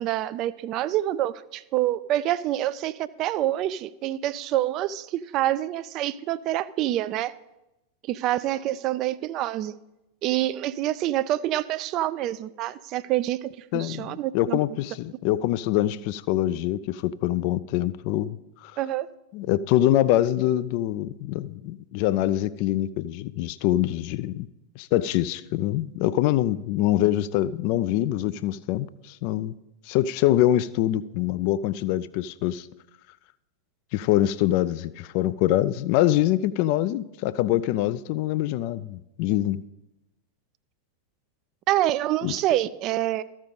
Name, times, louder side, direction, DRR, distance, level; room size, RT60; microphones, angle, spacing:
voice 1, 0.0-7.3 8.1-9.7 10.2-14.6 18.8-19.1 41.7-43.2, right 14 dB, 35° right, 0.3 m, -26 dB
voice 2, 13.7-18.4 18.6-18.7 19.3-24.5 24.8-29.5 29.9-32.7 33.9-39.6 42.2-42.3, left 13 dB, 45° left, 0.3 m, -24 dB
14.0 x 5.3 x 5.3 m
figure-of-eight pair, 90°, 0 cm